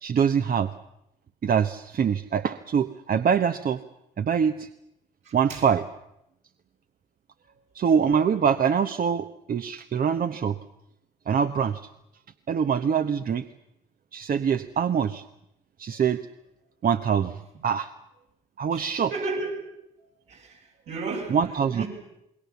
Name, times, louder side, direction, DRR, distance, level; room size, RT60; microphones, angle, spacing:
voice 1, 0.0-0.7 1.4-3.8 4.2-4.7 5.3-5.9 7.7-10.6 11.3-11.8 12.5-13.5 14.1-15.2 15.8-16.2 16.8-17.9 18.6-19.1 21.3-21.8, right 7 dB, 50° right, 9 dB, 1.0 m, -24 dB
voice 2, 5.3-5.6 18.7-19.6 20.0-20.6 20.9-21.4 21.7-21.9, right 3 dB, 75° right, -2 dB, 7.5 m, -33 dB
27.0 x 21.0 x 7.0 m, 0.85 s
hypercardioid pair, 50°, 19 cm